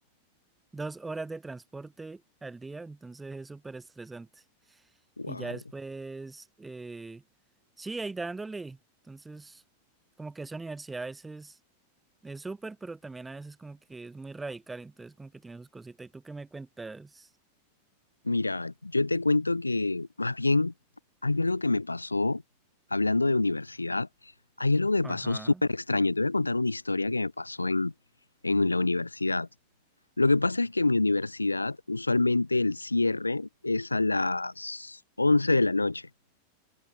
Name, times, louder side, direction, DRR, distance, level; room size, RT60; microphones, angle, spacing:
voice 1, 0.7-4.3 4.7-4.8 5.3-7.2 7.8-8.8 9.1-9.6 10.2-11.6 12.2-17.3 25.0-25.6, right 3 dB, 10° right, 0.4 m, -40 dB
voice 2, 18.3-20.7 21.2-22.4 22.9-24.1 24.6-27.9 28.4-29.5 30.2-36.1, left 2 dB, 80° left, 0.3 m, -26 dB
figure-of-eight pair, 90°, 0 cm